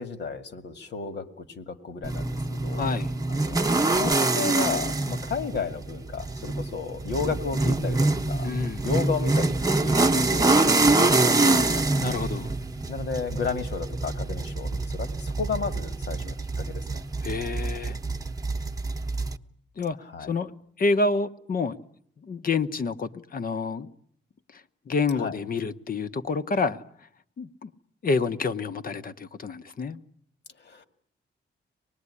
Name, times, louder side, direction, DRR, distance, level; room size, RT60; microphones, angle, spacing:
voice 1, 0.0-2.4 2.6-3.0 3.3-8.5 8.8-11.8 12.9-17.0 20.1-20.3 25.2-25.4 30.6-30.8, left 5 dB, 65° left, 2.2 m, -33 dB
sound 1, 2.0-19.4, right 2 dB, 20° right, 1.0 m, -25 dB
voice 2, 2.7-3.1 8.4-8.9 12.0-12.5 17.2-18.0 19.8-20.5 20.8-21.7 22.2-23.9 24.9-26.8 27.4-27.7 28.0-30.0, left 4 dB, 50° left, 1.1 m, -28 dB
25.0 x 20.0 x 9.8 m
cardioid pair, 110°, 19 cm